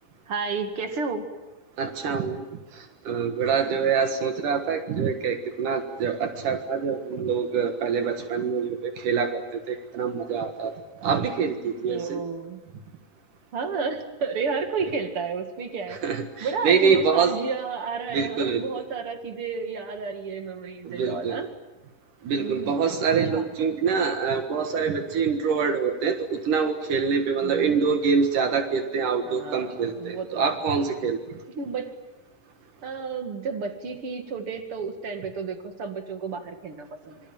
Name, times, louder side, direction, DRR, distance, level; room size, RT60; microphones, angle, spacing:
voice 1, 0.3-1.3 3.7-3.9 11.8-12.6 13.5-16.0 16.4-21.5 22.4-22.9 23.3-23.5 27.4-27.9 29.3-30.4 31.5-31.9 32.8-37.2, right 5 dB, 45° right, 6 dB, 2.6 m, -32 dB
voice 2, 1.8-2.5 2.7-10.7 11.0-12.2 16.0-17.4 18.1-18.8 20.8-21.4 22.2-31.2, right 6 dB, 65° right, 6 dB, 3.0 m, -25 dB
26.5 x 24.5 x 9.0 m, 1.1 s
omnidirectional pair, 4.2 m